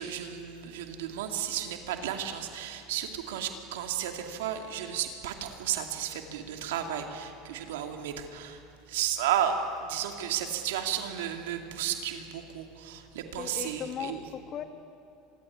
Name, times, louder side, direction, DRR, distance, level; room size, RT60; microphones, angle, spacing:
voice 1, 0.0-8.6 8.9-14.2, right 9 dB, 85° right, 5 dB, 2.4 m, -33 dB
voice 2, 13.4-14.6, left 8 dB, 40° left, 8 dB, 2.0 m, -37 dB
25.5 x 22.5 x 9.8 m, 2.6 s
supercardioid pair, 115°, 0 cm